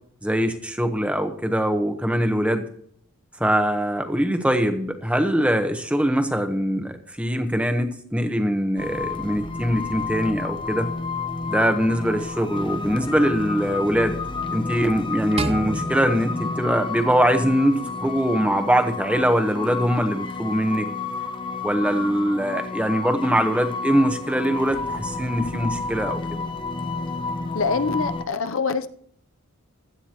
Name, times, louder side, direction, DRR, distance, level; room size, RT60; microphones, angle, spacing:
voice 1, 0.2-2.6 3.4-10.9 11.5-14.2 14.5-20.9 21.6-26.4, equal, 5° right, 7 dB, 1.0 m, -22 dB
sound 1, 8.8-28.2, left 4 dB, 20° left, 0.8 m, -30 dB
sound 2, 15.4-17.8, right 3 dB, 25° right, 0.4 m, -33 dB
voice 2, 27.5-28.9, left 4 dB, 60° left, 10 dB, 0.6 m, -24 dB
16.0 x 12.0 x 3.0 m, 0.65 s
head